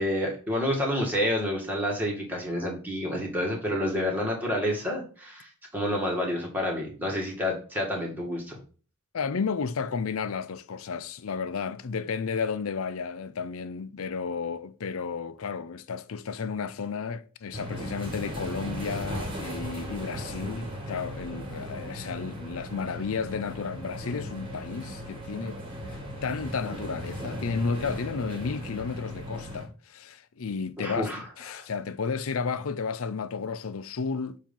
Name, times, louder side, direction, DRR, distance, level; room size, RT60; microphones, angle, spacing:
voice 1, 0.0-8.6 30.8-31.2 31.5-31.6, left 1 dB, 10° right, 1.6 m, -29 dB
voice 2, 9.1-25.6 26.2-34.4, left 5 dB, 75° left, 0.5 m, -32 dB
sound 1, 17.5-29.7, equal, 25° right, 1.5 m, -37 dB
7.5 x 2.8 x 5.3 m
head